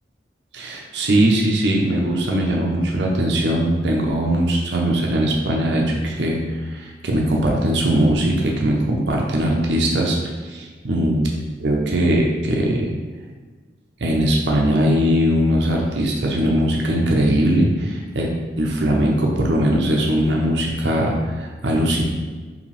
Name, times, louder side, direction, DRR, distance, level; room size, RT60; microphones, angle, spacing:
voice 1, 0.5-6.4 6.7-10.2 10.5-11.3 11.6-12.9 14.0-18.3 18.6-22.0, right 1 dB, 75° right, -1 dB, 0.7 m, -20 dB
5.0 x 2.9 x 3.4 m, 1.4 s
head